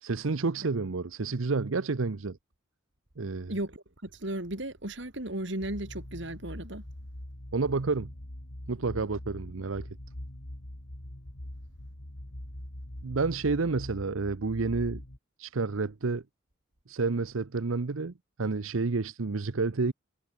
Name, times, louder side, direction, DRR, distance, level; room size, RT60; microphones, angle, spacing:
voice 1, 0.0-2.4 3.2-3.5 7.5-8.1 8.7-9.9 13.0-15.0 15.4-16.2 16.9-19.9, right 4 dB, 80° right, 0.8 m, -30 dB
voice 2, 3.5-6.8, right 1 dB, 60° right, 3.1 m, -35 dB
sound 1, 5.6-15.2, left 1 dB, 75° left, 3.3 m, -43 dB
head